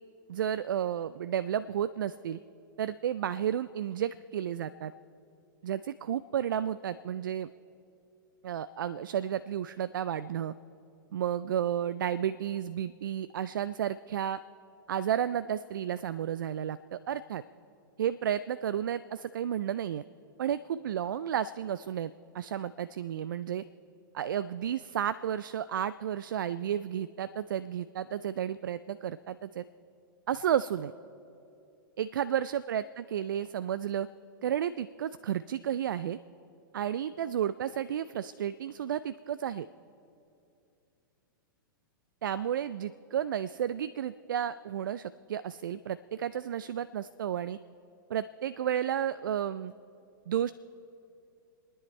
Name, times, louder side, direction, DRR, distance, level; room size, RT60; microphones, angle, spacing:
voice 1, 0.3-2.4 2.8-4.9 5.6-7.5 8.4-10.5 11.1-14.4 14.9-17.4 18.0-20.0 20.4-23.6 24.1-29.6 30.3-30.9 32.0-34.1 34.4-36.2 36.7-39.7 42.2-47.6 48.1-49.7 50.3-50.5, right 10 dB, 65° right, 15 dB, 0.4 m, -32 dB
30.0 x 10.0 x 4.3 m, 2.6 s
figure-of-eight pair, 110°, 12 cm